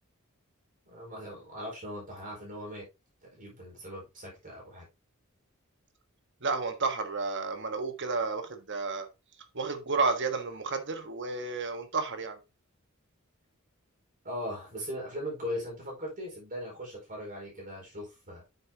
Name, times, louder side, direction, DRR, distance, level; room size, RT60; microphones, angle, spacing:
voice 1, 0.9-2.8 3.3-4.9 14.2-18.4, equal, 40° right, 4.8 m, -39 dB
voice 2, 6.4-9.1 9.5-12.4, right 4 dB, 55° right, 1.4 m, -31 dB
8.8 x 7.0 x 2.9 m
head